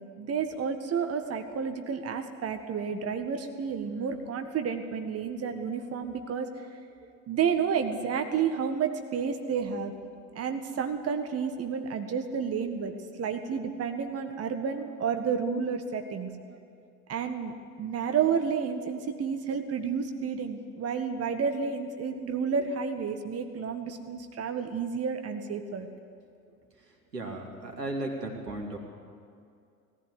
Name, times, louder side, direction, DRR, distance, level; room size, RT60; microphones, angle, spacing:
voice 1, 0.2-6.5 7.3-9.9 10.3-12.9 13.2-16.3 17.1-17.5 17.8-25.9, right 6 dB, 30° right, 7 dB, 1.6 m, -30 dB
voice 2, 27.1-28.8, right 1 dB, 85° right, 1 dB, 3.1 m, -35 dB
19.0 x 15.0 x 9.9 m, 2.4 s
figure-of-eight pair, 70°, 47 cm